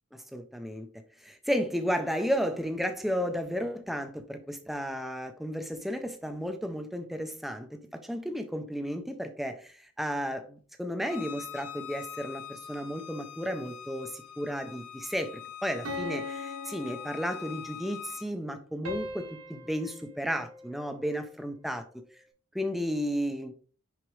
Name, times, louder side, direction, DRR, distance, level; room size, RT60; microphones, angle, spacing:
voice 1, 0.3-0.9 1.2-7.7 8.0-21.9 22.5-23.5, equal, ahead, 7 dB, 0.5 m, -33 dB
Bowed string instrument, 11.0-18.3, left 9 dB, 90° left, 0.6 m, -44 dB
sound 1, 15.8-17.8 18.8-21.2, left 2 dB, 80° right, 1.7 m, -40 dB
6.1 x 4.9 x 3.1 m, 0.41 s
head